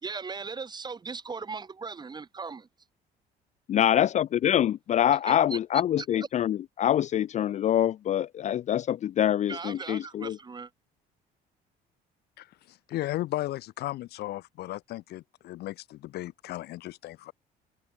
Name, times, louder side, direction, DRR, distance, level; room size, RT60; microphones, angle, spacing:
voice 1, 0.0-2.7 5.3-5.6 6.2-6.3 9.5-10.7, right 4 dB, 25° right, 1.7 m, -38 dB
voice 2, 3.7-10.4, left 11 dB, 45° left, 0.4 m, -25 dB
voice 3, 12.4-17.3, left 16 dB, 75° left, 1.0 m, -35 dB
cardioid pair, 110°, 17 cm